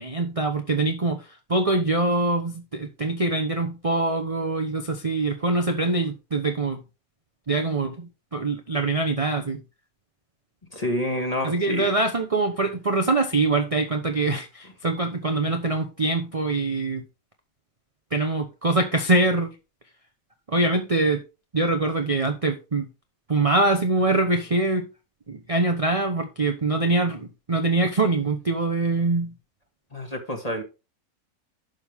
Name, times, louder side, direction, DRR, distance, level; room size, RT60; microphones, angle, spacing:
voice 1, 0.0-6.8 7.5-9.6 11.4-17.0 18.1-19.5 20.5-21.2 21.5-22.9 23.3-24.9 25.3-29.3, right 2 dB, 25° right, 0.9 m, -24 dB
voice 2, 10.7-11.9 29.9-30.6, left 1 dB, 25° left, 2.1 m, -28 dB
11.5 x 6.7 x 3.5 m
omnidirectional pair, 1.6 m